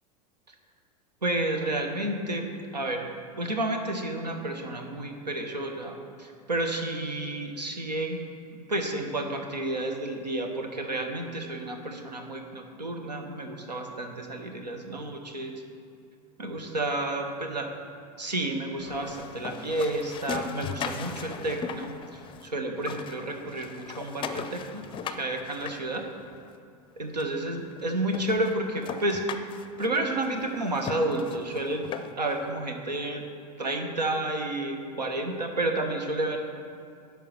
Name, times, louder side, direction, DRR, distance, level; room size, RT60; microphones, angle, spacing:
voice 1, 1.2-3.0 3.4-8.2 8.7-15.6 16.4-17.7 18.2-24.8 25.2-26.0 27.0-29.2 29.8-31.9 32.2-33.2 33.6-36.4, right 2 dB, 85° right, 4 dB, 1.1 m, -31 dB
sound 1, 18.8-22.5 22.8-26.5 27.2-27.3 27.7-27.8 28.1-32.4, left 7 dB, 25° left, 0.5 m, -38 dB
11.5 x 4.7 x 6.7 m, 2.4 s
figure-of-eight pair, 85°, 21 cm